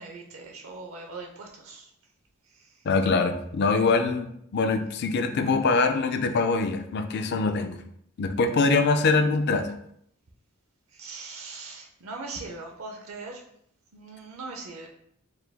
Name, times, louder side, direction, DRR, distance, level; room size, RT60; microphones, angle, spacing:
voice 1, 0.0-1.9 2.4-2.8 10.9-13.4 13.9-14.9, right 3 dB, 70° right, 2 dB, 0.6 m, -40 dB
voice 2, 2.8-7.8 8.2-9.7, left 4 dB, 50° left, 7 dB, 0.4 m, -23 dB
4.7 x 2.3 x 3.4 m, 0.70 s
head